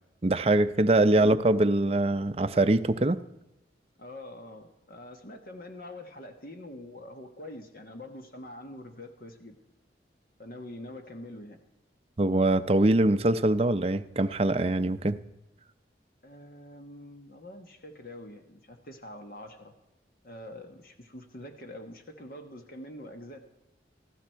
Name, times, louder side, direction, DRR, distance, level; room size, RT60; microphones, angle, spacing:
voice 1, 0.2-3.2 12.2-15.2, right 2 dB, 35° right, 10 dB, 0.5 m, -23 dB
voice 2, 4.0-9.6 10.4-11.6 16.2-19.7 20.2-23.4, left 1 dB, 50° left, 5 dB, 1.4 m, -45 dB
19.0 x 14.5 x 4.6 m, 0.94 s
head